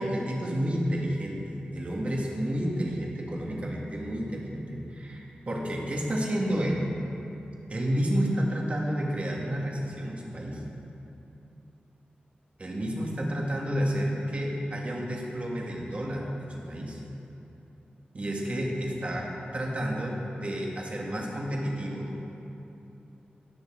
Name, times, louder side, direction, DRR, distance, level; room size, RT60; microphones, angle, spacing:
voice 1, 0.0-6.9 7.7-10.6 12.6-17.0 18.1-22.3, equal, 40° right, -1 dB, 1.5 m, -30 dB
17.0 x 6.6 x 3.7 m, 2.9 s
wide cardioid pair, 110°, 3 cm